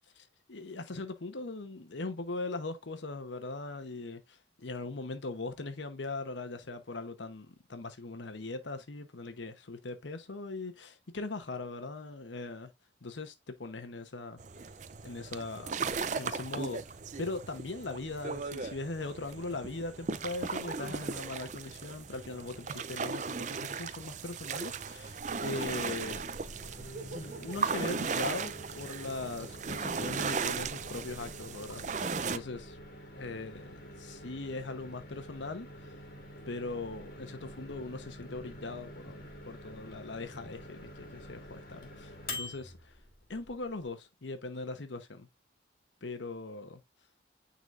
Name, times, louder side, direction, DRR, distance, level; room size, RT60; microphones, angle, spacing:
voice 1, 0.1-12.7 13.0-14.4 15.0-15.9 16.1-26.2 27.1-32.8 33.2-35.9 36.5-43.0 43.3-45.3 46.0-46.8, left 3 dB, 80° left, 0.9 m, -40 dB
sound 1, 14.4-32.4, right 5 dB, 40° right, 0.5 m, -37 dB
Microwave oven, 25.2-43.9, left 1 dB, 50° left, 2.2 m, -47 dB
9.4 x 4.0 x 2.5 m
head